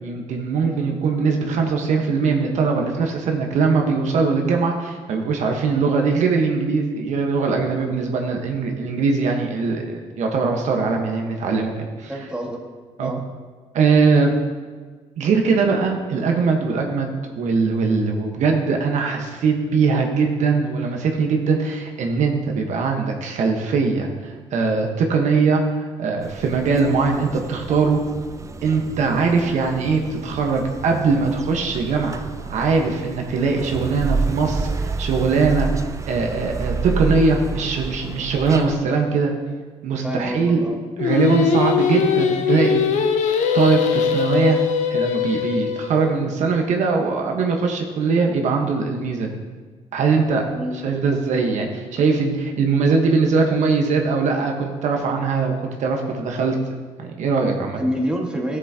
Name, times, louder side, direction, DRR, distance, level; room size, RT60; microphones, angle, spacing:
voice 1, 0.0-12.1 13.0-13.1 13.7-14.3 15.2-28.0 28.6-32.2 32.5-35.7 36.1-39.3 39.8-40.6 41.0-42.8 43.5-44.6 44.9-49.4 49.9-50.4 50.8-56.6 57.0-57.8, right 4 dB, 70° right, 2 dB, 1.2 m, -21 dB
voice 2, 12.1-12.6 13.0-13.2 29.4-29.5 40.0-40.8 50.5-50.8 57.8-58.6, equal, 5° right, 0 dB, 1.6 m, -28 dB
sound 1, 26.2-38.8, right 4 dB, 25° right, 0.5 m, -30 dB
Singing, 41.0-46.1, left 7 dB, 75° left, 0.8 m, -21 dB
13.5 x 7.4 x 2.8 m, 1.4 s
cardioid pair, 90°, 13 cm